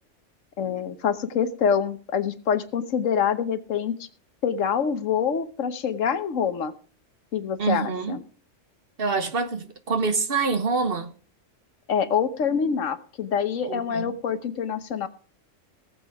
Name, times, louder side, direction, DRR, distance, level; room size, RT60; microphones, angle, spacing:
voice 1, 0.6-4.1 4.4-6.7 7.3-8.2 11.9-15.1, left 7 dB, 80° left, 1.4 m, -26 dB
voice 2, 7.6-8.2 9.0-11.1 13.6-14.1, right 4 dB, 50° right, 1.2 m, -26 dB
18.0 x 7.3 x 4.9 m
omnidirectional pair, 1.3 m